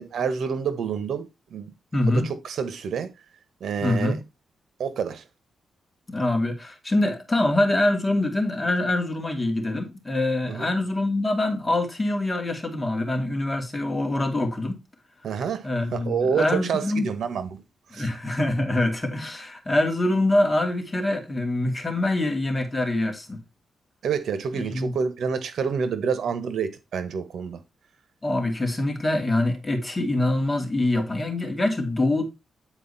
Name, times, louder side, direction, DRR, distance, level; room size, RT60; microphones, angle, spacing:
voice 1, 0.0-1.7 2.1-3.1 3.6-4.2 4.8-5.2 10.5-10.7 15.2-17.6 17.9-18.1 24.0-27.6, right 6 dB, 75° right, 1.4 m, -28 dB
voice 2, 1.9-2.3 3.8-4.2 6.1-14.8 15.6-17.1 17.9-23.4 24.5-24.9 28.2-32.2, left 1 dB, 20° left, 2.3 m, -24 dB
9.8 x 4.5 x 4.2 m
wide cardioid pair, 130°, 0 cm